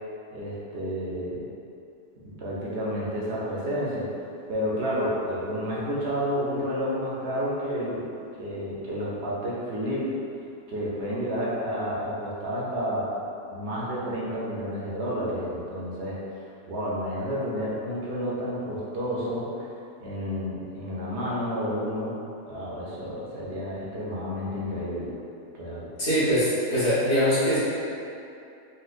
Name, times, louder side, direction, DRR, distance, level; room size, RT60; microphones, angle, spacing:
voice 1, 0.3-1.5 2.4-4.2 4.5-8.1 8.4-10.1 10.7-13.1 13.5-16.2 16.7-19.7 20.0-22.2 22.5-25.1 25.5-25.9, equal, 60° right, -7 dB, 0.8 m, -30 dB
voice 2, 26.0-27.6, equal, 50° left, -12 dB, 1.4 m, -22 dB
4.1 x 2.2 x 2.4 m, 2.7 s
omnidirectional pair, 1.6 m